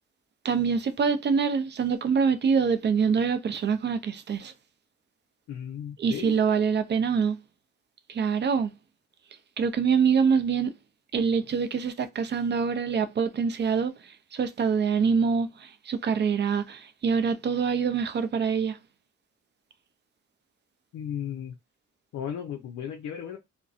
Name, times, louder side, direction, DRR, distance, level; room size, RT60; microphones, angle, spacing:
voice 1, 0.4-4.5 6.0-7.4 8.1-8.7 9.6-10.7 11.1-13.9 14.3-18.8, right 6 dB, 35° right, 0.4 m, -25 dB
voice 2, 5.5-6.4 20.9-21.5 22.1-23.4, left 9 dB, 65° left, 0.6 m, -35 dB
2.5 x 2.1 x 2.4 m
cardioid pair, 90°, 30 cm